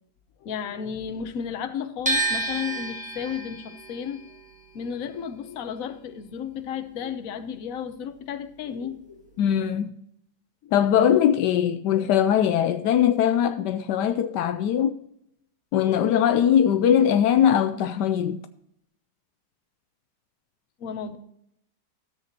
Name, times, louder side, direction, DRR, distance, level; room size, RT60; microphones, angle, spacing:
voice 1, 0.4-4.2 4.7-9.3 10.6-10.7 20.8-21.2, left 7 dB, 60° left, 1.2 m, -33 dB
sound 1, 2.1-8.1 8.4-9.7, right 2 dB, 5° right, 1.4 m, -32 dB
voice 2, 9.4-9.9 10.7-15.0 15.7-18.4, left 9 dB, 80° left, 1.2 m, -21 dB
13.5 x 7.6 x 2.9 m
omnidirectional pair, 1.9 m